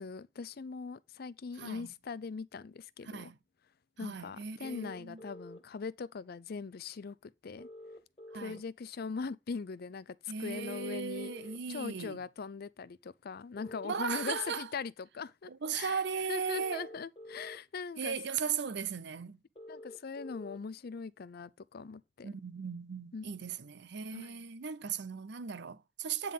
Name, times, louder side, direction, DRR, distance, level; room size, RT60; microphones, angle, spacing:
voice 1, 0.0-3.3 4.0-7.7 8.3-11.3 11.7-16.0 16.3-18.2 19.7-22.3 23.1-23.2 24.1-24.4, left 5 dB, 55° left, 0.5 m, -41 dB
voice 2, 1.6-1.9 3.1-3.4 4.0-5.2 8.3-8.6 10.3-12.2 13.8-14.7 15.5-16.9 18.0-19.4 22.2-26.3, right 6 dB, 60° right, 0.6 m, -37 dB
sound 1, 4.6-5.6 7.6-8.6 10.5-11.6 13.5-14.6 16.5-17.6 19.5-20.6, left 1 dB, 30° left, 1.6 m, -49 dB
9.2 x 4.0 x 5.3 m
head